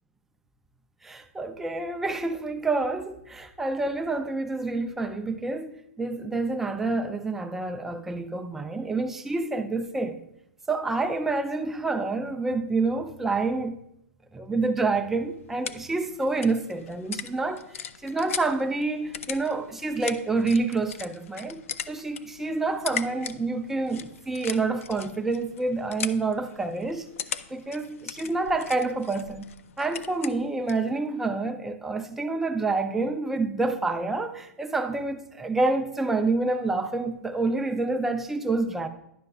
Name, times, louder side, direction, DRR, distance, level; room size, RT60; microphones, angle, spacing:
voice 1, 1.0-10.2 10.7-13.8 14.3-27.1 27.5-29.5 29.8-38.9, right 3 dB, 5° right, 0.3 m, -28 dB
sound 1, 15.0-30.9, left 8 dB, 70° left, 0.4 m, -40 dB
10.5 x 6.4 x 2.3 m
hypercardioid pair, 155°, 8 cm